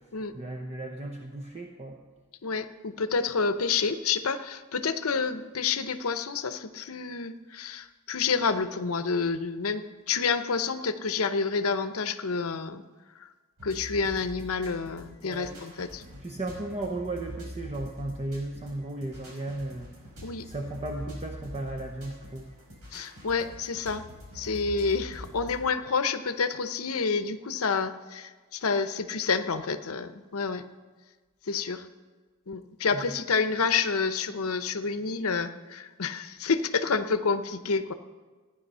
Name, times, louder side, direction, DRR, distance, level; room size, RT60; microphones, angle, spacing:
voice 1, 0.0-2.0 15.2-15.5 16.1-22.5 32.9-33.1, right 2 dB, 30° right, 2 dB, 0.9 m, -36 dB
voice 2, 2.4-12.8 13.2-13.3 13.6-16.0 20.2-20.4 22.9-24.0 24.3-30.6 31.5-31.9 32.5-37.9, left 5 dB, 70° left, 10 dB, 0.8 m, -29 dB
sound 1, 13.6-25.6, equal, 85° right, 5.1 m, -44 dB
15.0 x 10.0 x 5.5 m, 1.4 s
head